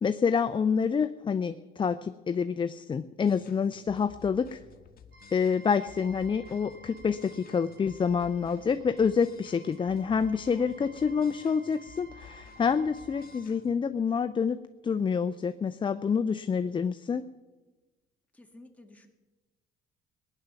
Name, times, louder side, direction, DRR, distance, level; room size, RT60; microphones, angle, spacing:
voice 1, 0.0-4.6 5.3-17.3, left 6 dB, 25° left, 11 dB, 0.5 m, -27 dB
sound 1, 3.3-13.7, left 7 dB, 50° left, 1.5 m, -54 dB
sound 2, 5.1-13.4, right 2 dB, 65° right, 4.8 m, -54 dB
voice 2, 10.5-11.0 18.3-19.1, left 1 dB, 5° left, 2 dB, 2.0 m, -54 dB
19.0 x 10.0 x 6.9 m, 1.2 s
cardioid pair, 105°, 20 cm